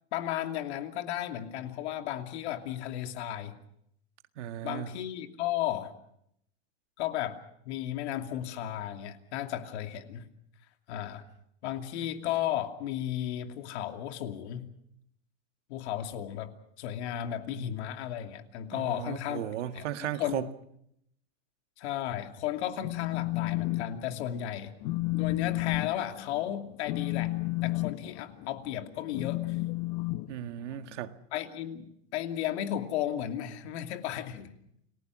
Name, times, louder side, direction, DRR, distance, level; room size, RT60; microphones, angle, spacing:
voice 1, 0.1-3.6 4.6-5.9 7.0-7.4 7.7-10.3 10.9-11.2 11.6-14.7 15.7-16.5 16.8-19.4 19.7-20.5 21.8-24.7 25.1-27.4 27.6-29.6 31.3-34.5, left 11 dB, 70° left, 2.8 m, -34 dB
voice 2, 4.4-4.9 18.7-20.5 30.3-31.2, right 11 dB, 90° right, 1.8 m, -36 dB
Telephone, 22.6-23.9 24.2-24.5 24.8-30.9, left 20 dB, 45° left, 1.1 m, -32 dB
29.0 x 20.0 x 6.2 m
supercardioid pair, 150°, 34 cm